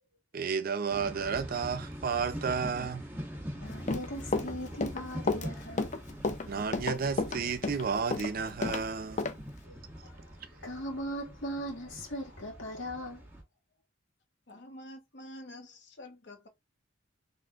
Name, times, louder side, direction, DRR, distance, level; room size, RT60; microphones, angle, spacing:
voice 1, 0.3-3.1 6.5-9.3, right 5 dB, 50° right, 0.5 m, -32 dB
sound 1, 0.9-13.4, equal, 10° right, 1.5 m, -44 dB
voice 2, 3.5-6.0 6.5-6.6 9.6-9.8 10.0-10.3 10.6-13.3, equal, 90° left, 2.1 m, -39 dB
Run, 3.7-8.8 9.2-9.3, left 3 dB, 40° left, 0.6 m, -31 dB
voice 3, 14.5-16.5, left 1 dB, 60° left, 1.1 m, -48 dB
4.2 x 3.3 x 2.4 m
head